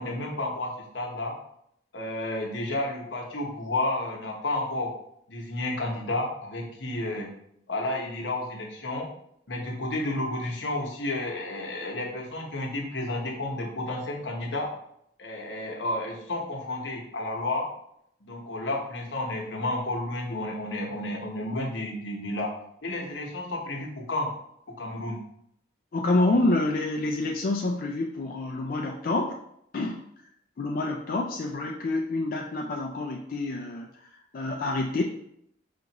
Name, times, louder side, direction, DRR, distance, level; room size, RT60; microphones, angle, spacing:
voice 1, 0.0-1.4 1.9-4.9 5.3-7.3 7.7-9.1 9.5-14.7 15.2-17.7 18.2-22.5 22.8-24.3 24.8-25.2, left 2 dB, 80° left, -1 dB, 0.9 m, -31 dB
voice 2, 25.9-29.4 29.7-30.0 30.6-35.0, left 2 dB, 50° left, 0 dB, 0.3 m, -27 dB
5.2 x 2.4 x 2.9 m, 0.74 s
head